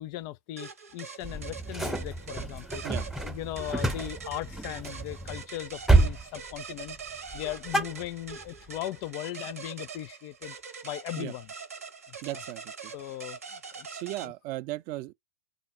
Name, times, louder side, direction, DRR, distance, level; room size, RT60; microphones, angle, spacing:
voice 1, 0.0-2.8 3.2-10.6 10.8-11.5 12.1-12.4 12.9-13.9 14.2-14.3, left 15 dB, 45° left, 0.4 m, -38 dB
sound 1, 0.6-14.3, right 5 dB, 85° right, 1.1 m, -43 dB
sound 2, 1.2-5.4 5.8-6.2 6.5-7.0 7.3-8.6, right 2 dB, 5° right, 0.8 m, -28 dB
voice 2, 12.2-12.9 13.9-15.1, right 16 dB, 45° right, 0.4 m, -36 dB
3.8 x 2.1 x 4.1 m
hypercardioid pair, 100°, 8 cm